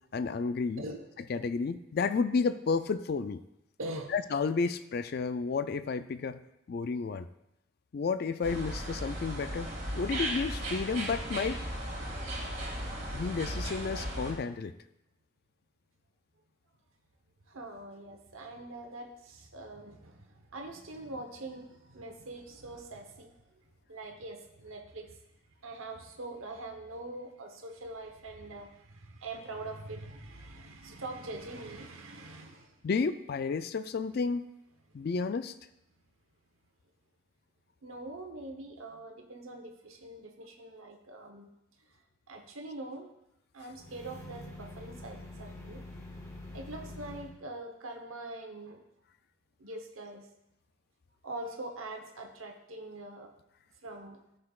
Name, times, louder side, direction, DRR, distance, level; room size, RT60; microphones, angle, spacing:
voice 1, 0.1-0.9 1.2-3.4 4.1-6.4 6.7-7.3 7.9-9.7 9.9-11.6 13.1-14.7 32.8-34.4 34.9-35.5, left 4 dB, 50° left, 12 dB, 0.3 m, -31 dB
voice 2, 3.8-4.1 17.5-23.6 23.9-25.2 25.6-32.9 37.8-41.5 42.3-43.1 43.5-45.8 46.5-48.8 49.6-50.3 51.2-53.3 53.8-54.2, right 2 dB, 80° right, 3 dB, 1.0 m, -43 dB
sound 1, 8.4-14.3, right 1 dB, 35° right, 2.2 m, -36 dB
sound 2, 43.7-47.4, left 1 dB, 15° left, 0.8 m, -46 dB
13.5 x 6.5 x 2.4 m, 0.83 s
head